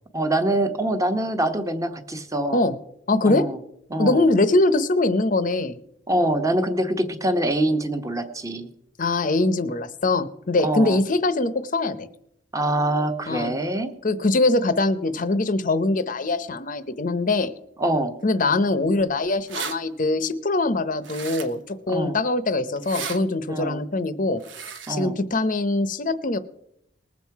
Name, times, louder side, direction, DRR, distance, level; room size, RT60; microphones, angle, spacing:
voice 1, 0.1-2.6 3.2-3.6 3.9-4.3 6.1-8.7 10.6-11.0 12.5-13.9 17.8-18.1 21.9-22.2 23.5-23.8 24.9-25.2, right 1 dB, 15° right, 7 dB, 1.0 m, -24 dB
voice 2, 3.1-3.5 4.0-5.8 9.0-12.1 13.3-13.5 14.0-17.5 18.2-24.4 24.9-26.4, left 2 dB, 40° left, 13 dB, 0.8 m, -22 dB
sound 1, 19.0-19.1 19.3-19.7 21.0-21.7 22.8-23.2 24.4-24.9, right 6 dB, 70° right, 1.2 m, -34 dB
20.0 x 7.4 x 4.7 m, 0.77 s
head